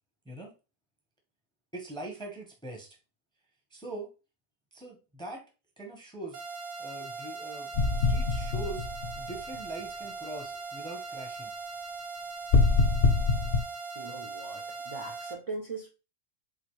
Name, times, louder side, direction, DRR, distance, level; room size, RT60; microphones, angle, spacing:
voice 1, 1.7-2.9 3.7-4.1 4.7-5.4 5.8-6.4 6.8-11.5, right 2 dB, 5° left, 2 dB, 0.5 m, -42 dB
sound 1, 6.3-15.3, right 4 dB, 70° right, 1.0 m, -40 dB
sound 2, 7.7-9.6 12.5-13.6, left 4 dB, 60° left, 0.9 m, -24 dB
voice 2, 13.9-15.9, right 3 dB, 40° right, 0 dB, 0.4 m, -40 dB
3.9 x 2.6 x 3.0 m, 0.31 s
omnidirectional pair, 1.4 m